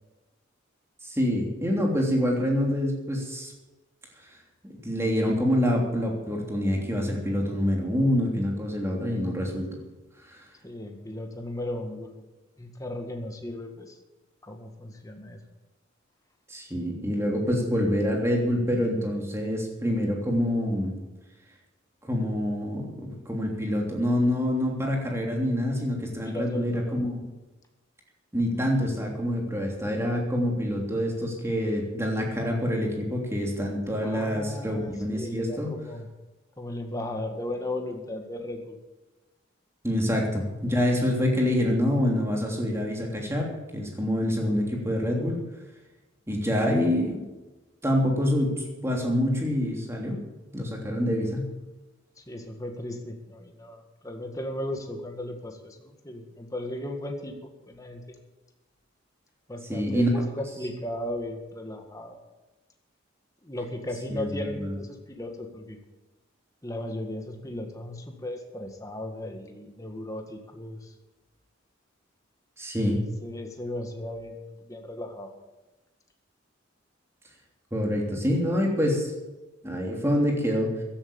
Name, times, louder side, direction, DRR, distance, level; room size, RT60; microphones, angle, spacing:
voice 1, 1.0-3.5 4.6-9.8 10.3-10.4 16.5-20.9 22.0-27.2 28.3-35.7 39.8-45.4 46.3-47.2 47.8-50.2 50.5-51.4 59.7-60.1 64.1-64.8 72.6-73.0 77.7-79.1 79.6-80.7, equal, 15° right, 0 dB, 3.2 m, -26 dB
voice 2, 10.6-12.2 12.6-14.0 14.4-15.4 26.2-27.1 34.0-36.1 36.6-38.8 52.2-58.2 59.5-62.2 63.4-65.8 66.6-70.9 73.2-75.3, left 1 dB, 15° left, 3 dB, 1.8 m, -36 dB
15.0 x 11.5 x 7.0 m, 1.1 s
head